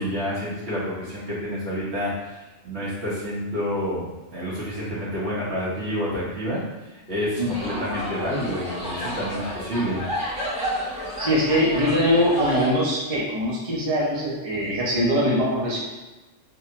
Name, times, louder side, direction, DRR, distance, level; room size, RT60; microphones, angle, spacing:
voice 1, 0.0-4.1 4.3-6.6 7.1-10.0, equal, 60° right, -8 dB, 1.4 m, -28 dB
voice 2, 7.4-8.0 11.2-15.8, equal, 35° right, -6 dB, 0.7 m, -22 dB
sound 1, 7.5-12.7, equal, 5° right, 0.8 m, -31 dB
3.5 x 2.1 x 2.8 m, 1.1 s
omnidirectional pair, 1.3 m